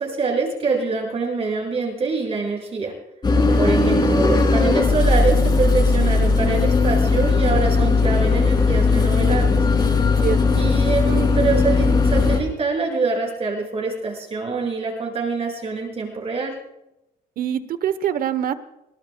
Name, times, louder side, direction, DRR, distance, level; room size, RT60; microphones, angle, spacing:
voice 1, 0.0-2.9 3.5-9.6 10.5-16.5, right 4 dB, 35° right, -1 dB, 7.1 m, -25 dB
sound 1, 3.2-12.4, left 3 dB, 25° left, 3.3 m, -18 dB
voice 2, 10.2-10.6 17.4-18.5, right 9 dB, 55° right, 13 dB, 1.1 m, -25 dB
24.0 x 20.0 x 2.3 m, 0.88 s
cardioid pair, 110°, 17 cm